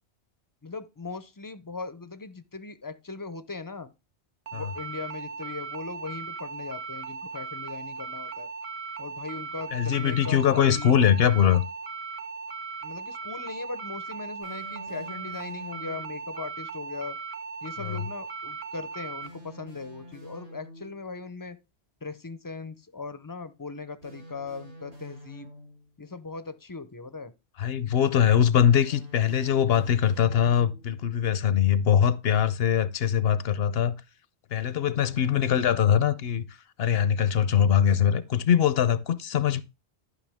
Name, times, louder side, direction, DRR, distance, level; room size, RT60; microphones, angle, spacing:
voice 1, 0.6-3.9 4.5-8.5 9.0-11.0 12.8-17.2 17.6-21.6 22.0-25.5 26.0-27.3 35.2-35.7, left 4 dB, 25° left, 0.4 m, -39 dB
sound 1, 4.5-19.3, right 4 dB, 60° right, 1.1 m, -38 dB
voice 2, 9.7-11.6 17.8-18.0 27.6-33.9 34.5-36.4 36.8-39.6, left 9 dB, 65° left, 0.8 m, -22 dB
sound 2, 14.4-16.2 19.2-21.1 24.0-26.0 28.8-31.0, equal, 80° right, 6.9 m, -47 dB
11.5 x 5.7 x 3.5 m
omnidirectional pair, 1.1 m